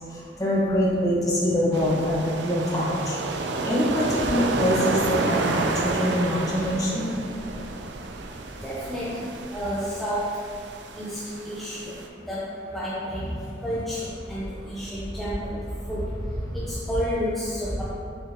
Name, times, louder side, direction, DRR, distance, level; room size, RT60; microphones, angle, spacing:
voice 1, 0.1-3.2 3.6-7.1 16.5-16.6, equal, 20° left, -6 dB, 1.4 m, -24 dB
sound 1, 1.7-12.1, right 3 dB, 80° right, 0.6 m, -30 dB
voice 2, 8.6-9.2 9.5-10.3 11.0-11.2 11.4-12.0 12.3-12.4 12.7-13.3 13.6-15.4 15.9-16.0 16.5-17.9, equal, ahead, -9 dB, 0.7 m, -30 dB
7.7 x 5.8 x 3.0 m, 2.4 s
head